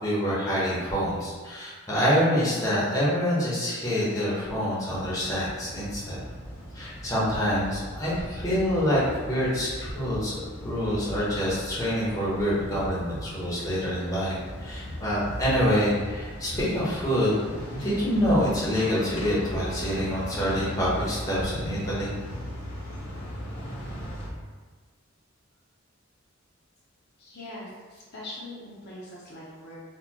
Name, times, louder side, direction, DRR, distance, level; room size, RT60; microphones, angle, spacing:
voice 1, 0.0-6.2 6.7-17.4 17.7-22.1, equal, 15° left, -8 dB, 0.9 m, -26 dB
sound 1, 4.8-24.3, equal, 70° left, 1.2 m, -38 dB
voice 2, 27.2-29.8, left 1 dB, 55° left, -6 dB, 0.8 m, -42 dB
4.2 x 2.4 x 2.9 m, 1.5 s
head